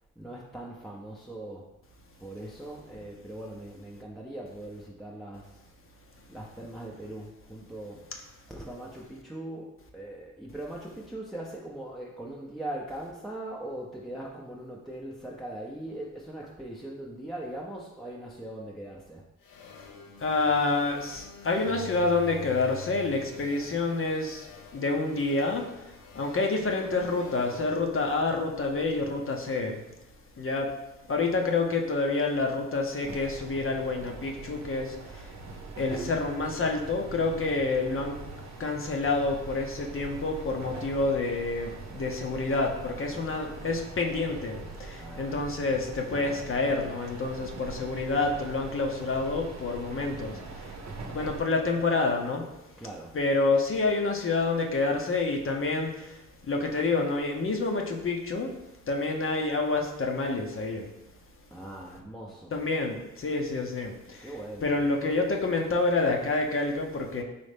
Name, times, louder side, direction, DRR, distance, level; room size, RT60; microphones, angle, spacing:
voice 1, 0.2-1.7 2.2-5.6 6.3-8.0 8.5-19.3 24.5-24.6 45.0-45.5 52.8-53.2 61.5-62.6 64.2-64.8, right 1 dB, ahead, -3 dB, 0.6 m, -40 dB
sound 1, 19.4-28.9, left 7 dB, 80° left, 0.7 m, -47 dB
voice 2, 20.2-24.5 24.7-29.8 30.4-30.7 31.1-35.3 35.8-38.2 38.6-50.8 51.1-52.4 53.1-58.5 58.9-60.9 62.5-64.3 64.6-67.2, left 3 dB, 40° left, 2 dB, 0.8 m, -28 dB
sound 2, 33.0-51.4, right 3 dB, 55° right, 0.8 m, -42 dB
4.1 x 3.1 x 3.4 m, 0.93 s
supercardioid pair, 55°, 33 cm